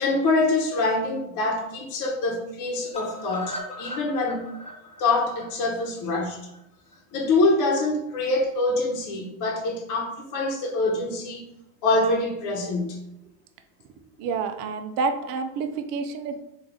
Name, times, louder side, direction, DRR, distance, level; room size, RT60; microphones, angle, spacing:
voice 1, 0.0-4.5 5.0-6.4 7.1-11.5 11.8-13.0, left 2 dB, 45° left, -1 dB, 1.1 m, -25 dB
sound 1, 2.9-6.9 7.3-7.4 7.7-7.8 8.1-8.2, left 1 dB, 15° left, 1.0 m, -39 dB
voice 2, 14.2-16.4, right 4 dB, 50° right, 6 dB, 0.6 m, -28 dB
3.3 x 2.6 x 3.9 m, 0.83 s
supercardioid pair, 110°, 43 cm